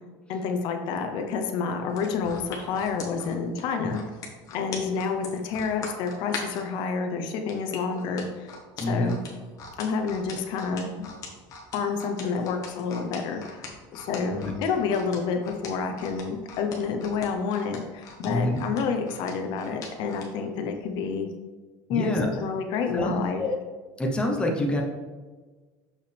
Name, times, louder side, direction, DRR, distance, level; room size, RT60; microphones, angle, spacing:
voice 1, 0.3-4.0 4.5-9.2 9.8-11.0 11.7-13.7 13.9-21.3 21.9-23.4, left 5 dB, 60° left, 5 dB, 0.7 m, -29 dB
sound 1, 1.9-6.7 7.5-20.3 20.7-20.9, left 5 dB, 40° left, 1.4 m, -40 dB
voice 2, 8.8-9.2 14.4-14.5 18.2-18.6 21.9-22.3 22.9-23.5 24.0-24.8, left 1 dB, 10° left, 0 dB, 0.8 m, -26 dB
6.8 x 5.5 x 3.4 m, 1.4 s
cardioid pair, 150°, 9 cm